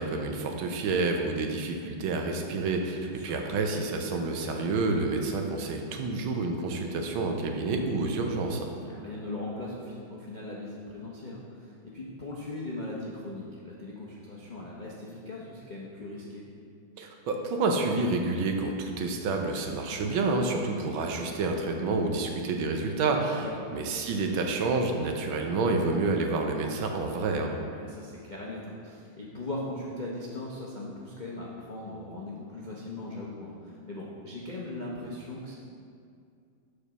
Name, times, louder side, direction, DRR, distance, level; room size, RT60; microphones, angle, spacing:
voice 1, 0.0-8.7 17.0-23.4 23.7-27.5, right 3 dB, 75° right, 3 dB, 1.5 m, -29 dB
voice 2, 3.0-3.4 8.8-16.4 20.5-20.8 23.4-23.7 27.7-35.5, left 2 dB, 80° left, -5 dB, 0.4 m, -39 dB
6.5 x 5.1 x 5.9 m, 2.3 s
omnidirectional pair, 2.3 m